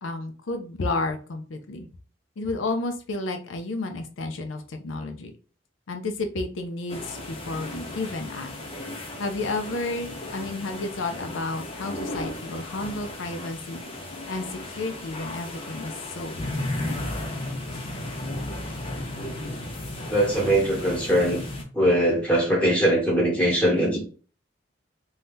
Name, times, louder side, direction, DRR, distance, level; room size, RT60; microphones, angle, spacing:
voice 1, 0.0-1.9 2.4-5.3 5.9-8.5 9.2-13.8 14.3-17.2, left 2 dB, 80° left, 5 dB, 0.5 m, -32 dB
sound 1, 6.9-21.6, left 1 dB, 30° left, 0.4 m, -35 dB
voice 2, 20.1-21.4 21.7-24.0, right 1 dB, 5° left, -2 dB, 1.0 m, -21 dB
2.7 x 2.3 x 3.4 m, 0.39 s
head